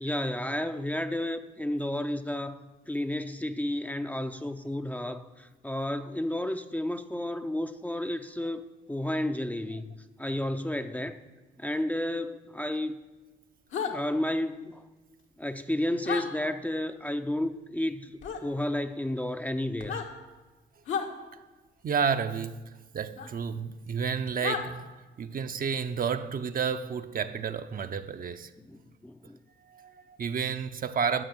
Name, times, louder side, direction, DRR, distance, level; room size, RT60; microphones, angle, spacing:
voice 1, 0.0-8.6 8.9-9.9 10.2-11.2 11.6-13.0 13.9-14.8 15.4-18.1 18.4-20.0 28.7-28.8 29.0-29.4, left 1 dB, 10° left, 0.6 m, -31 dB
sound 1, 13.7-13.9 16.0-16.2 18.2-18.4 19.7-20.1 20.8-21.1 23.2-23.3 24.4-24.6, left 6 dB, 75° left, 1.6 m, -31 dB
voice 2, 21.8-24.8 25.2-28.5 29.7-31.2, right 6 dB, 45° right, 0.7 m, -31 dB
12.5 x 6.6 x 7.8 m
cardioid pair, 90°, 20 cm